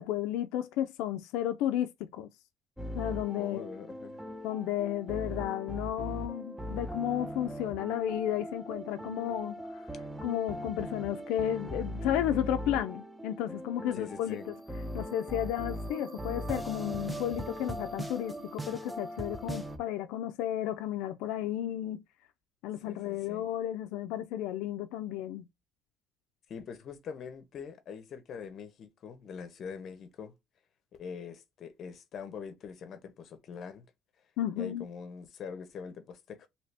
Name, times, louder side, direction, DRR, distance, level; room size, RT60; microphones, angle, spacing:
voice 1, 0.0-2.3 2.9-3.7 4.4-9.9 10.2-14.5 14.9-22.0 22.6-25.5 34.4-34.9, left 11 dB, 85° left, 0.3 m, -33 dB
sound 1, 2.8-19.8, equal, 5° right, 0.4 m, -39 dB
voice 2, 3.4-4.2 13.9-14.5 22.8-23.5 26.5-30.3 30.9-33.9 34.6-36.5, left 6 dB, 45° left, 0.7 m, -43 dB
2.8 x 2.6 x 3.3 m
cardioid pair, 135°, 0 cm